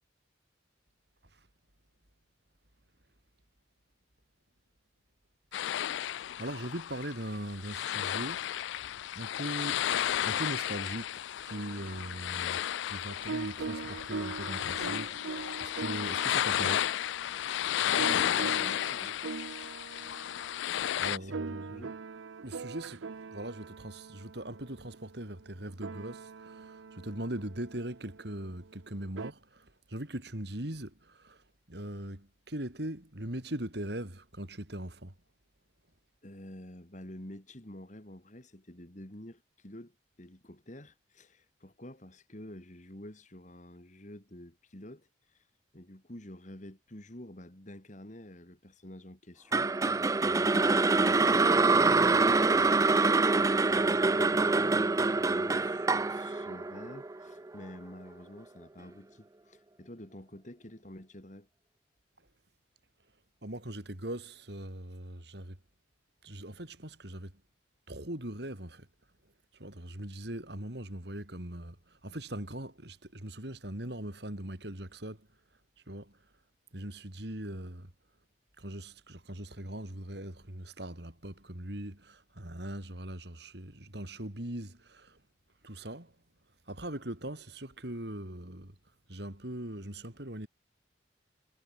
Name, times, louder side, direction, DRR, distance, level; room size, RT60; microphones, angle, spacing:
sound 1, 5.5-21.2, left 11 dB, 70° left, 0.3 m, -33 dB
voice 1, 6.4-8.5 9.2-9.9 10.2-16.9 21.0-21.9 22.4-35.1 63.4-65.6 66.2-67.3 67.9-68.9 69.5-75.3 75.9-76.2 76.7-77.9 78.6-85.2 85.6-86.1 86.7-88.8 89.1-90.5, right 1 dB, 55° right, 3.5 m, -40 dB
sound 2, 11.5-29.3, right 4 dB, 80° right, 0.6 m, -43 dB
voice 2, 17.5-19.2 21.1-22.0 36.2-45.4 45.7-53.0 53.3-61.5, left 1 dB, 40° left, 2.8 m, -49 dB
sound 3, 49.5-57.7, right 3 dB, 15° right, 0.4 m, -25 dB
head